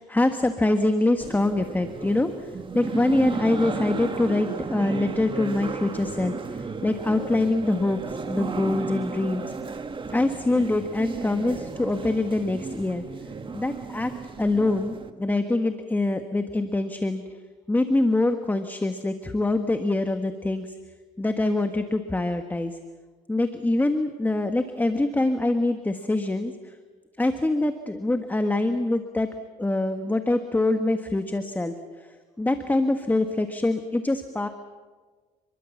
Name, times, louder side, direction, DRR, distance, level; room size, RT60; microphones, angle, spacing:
voice 1, 0.0-2.3 2.7-9.5 10.1-13.0 13.5-14.1 14.4-17.2 17.7-20.7 21.2-22.8 23.3-26.7 27.2-29.3 29.6-31.7 32.4-34.5, left 2 dB, 10° left, 7 dB, 1.5 m, -24 dB
sound 1, 1.2-15.1, right 4 dB, 30° right, 1.9 m, -34 dB
28.5 x 22.0 x 7.3 m, 1.4 s
cardioid pair, 110°, 17 cm